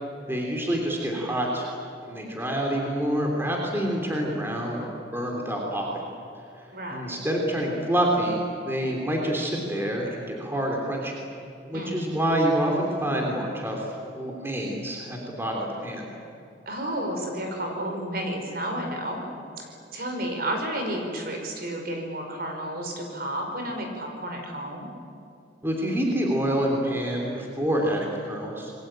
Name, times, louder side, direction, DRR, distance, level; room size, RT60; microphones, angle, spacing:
voice 1, 0.3-1.7 2.1-6.1 6.9-11.2 11.7-13.9 14.1-16.1 25.6-28.7, right 1 dB, 10° right, 0 dB, 3.4 m, -27 dB
voice 2, 6.7-7.2 11.7-12.1 16.6-19.2 19.6-19.7 19.9-24.9, right 1 dB, 50° right, 3 dB, 5.3 m, -31 dB
27.5 x 22.0 x 9.0 m, 2.7 s
head